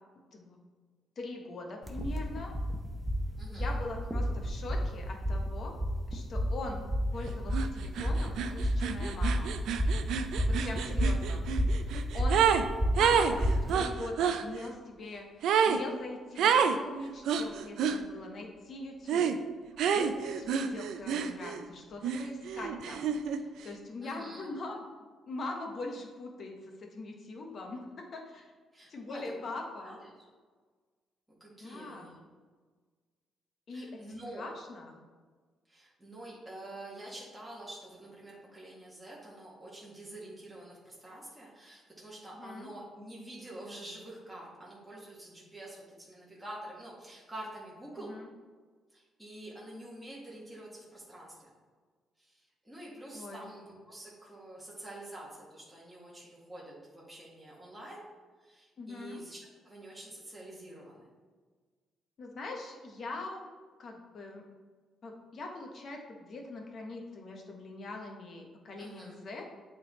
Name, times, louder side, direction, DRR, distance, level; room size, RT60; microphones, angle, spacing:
voice 1, 1.2-2.5 3.5-5.8 6.1-6.9 7.1-9.6 10.5-11.5 11.8-11.9 12.1-12.4 13.0-19.3 19.8-24.8 25.3-28.5 28.9-30.0 31.6-32.1 33.7-34.0 34.3-35.0 42.4-42.7 48.1-48.3 53.1-53.4 58.8-59.2 62.2-63.5 63.8-64.4 65.0-69.5, left 2 dB, 55° left, 2 dB, 1.1 m, -42 dB
sound 1, 1.8-13.7, equal, 20° right, 0.9 m, -31 dB
voice 2, 3.4-3.7 24.0-24.5 28.7-29.3 29.8-30.1 31.4-32.2 33.7-34.5 35.7-48.1 48.9-51.5 52.2-58.1 58.4-59.4 59.6-61.1 68.8-69.2, right 1 dB, 5° right, -7 dB, 1.7 m, -47 dB
sound 2, 7.5-7.7 8.0-12.7 13.0-14.4 15.4-15.8 16.4-16.8 17.3-18.0 19.1-19.4 19.8-21.6 22.0-23.4, right 7 dB, 80° right, 0.4 m, -28 dB
8.3 x 3.9 x 3.1 m, 1.5 s
cardioid pair, 90°, 0 cm